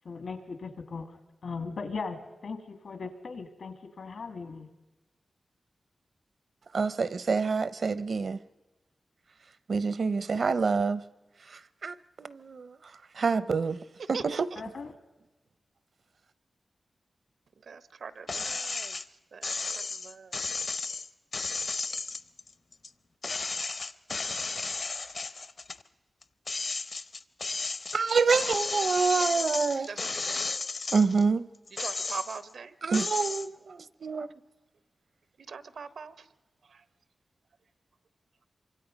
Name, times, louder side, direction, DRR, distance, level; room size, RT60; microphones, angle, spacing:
voice 1, 0.0-4.7 14.6-14.9, left 4 dB, 75° left, 2.1 m, -38 dB
voice 2, 6.7-8.4 9.7-11.0 11.8-12.7 13.2-13.8 14.1-14.5 27.9-29.9 30.9-31.5 32.8-34.3, right 4 dB, 60° right, 0.7 m, -27 dB
voice 3, 14.1-14.6 17.7-19.0 19.3-19.6 19.9-20.5 29.9-30.4 31.8-32.7 35.5-36.1 36.7-36.8, right 5 dB, 90° right, 1.0 m, -41 dB
sound 1, 18.3-19.0 19.4-22.9 23.2-25.8 26.2-31.2 31.7-32.5 32.9-33.5, left 3 dB, 45° left, 0.7 m, -33 dB
26.5 x 24.5 x 5.2 m
wide cardioid pair, 155°, 0 cm